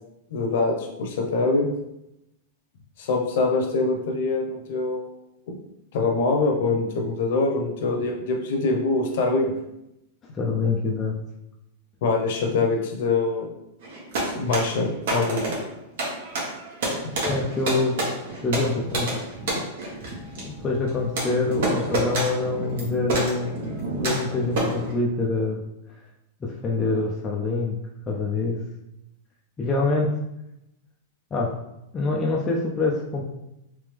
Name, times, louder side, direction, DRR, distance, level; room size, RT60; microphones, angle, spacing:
voice 1, 0.3-1.7 3.0-5.1 5.5-5.6 5.9-9.5 12.0-13.5 14.2-15.6, left 3 dB, 55° left, 2 dB, 0.8 m, -24 dB
voice 2, 10.3-11.1 17.2-18.0 18.4-19.2 19.5-19.6 20.3-23.5 23.9-25.6 26.4-27.8 28.1-28.6 29.6-30.1 31.3-31.5 31.9-33.2, left 3 dB, 15° left, -3 dB, 0.4 m, -25 dB
sound 1, 13.8-24.9, right 1 dB, 60° right, 1.3 m, -29 dB
3.4 x 3.3 x 3.3 m, 0.85 s
supercardioid pair, 170°, 0 cm